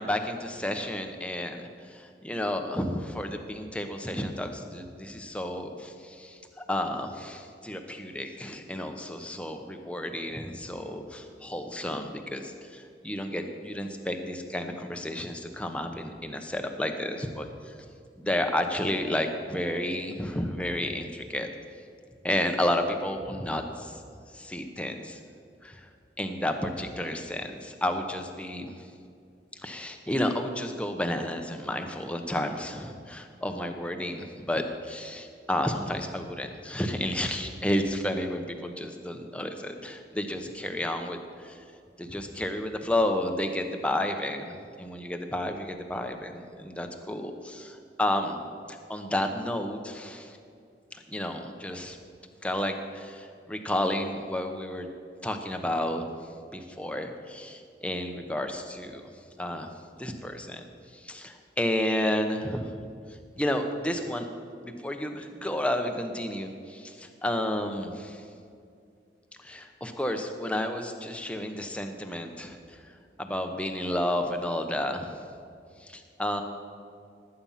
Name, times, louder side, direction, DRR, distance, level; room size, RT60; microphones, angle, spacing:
voice 1, 0.0-17.8 18.2-21.5 22.2-24.0 24.3-25.2 25.6-25.9 26.2-28.9 29.6-41.6 42.0-48.4 48.7-50.4 50.9-52.0 52.4-54.9 55.2-56.0 56.5-59.1 59.4-59.7 60.0-62.7 63.4-64.3 64.6-68.3 69.4-72.8 73.2-75.1 75.8-76.4, left 1 dB, 5° left, 5 dB, 0.9 m, -31 dB
19.0 x 8.8 x 5.8 m, 2.4 s
head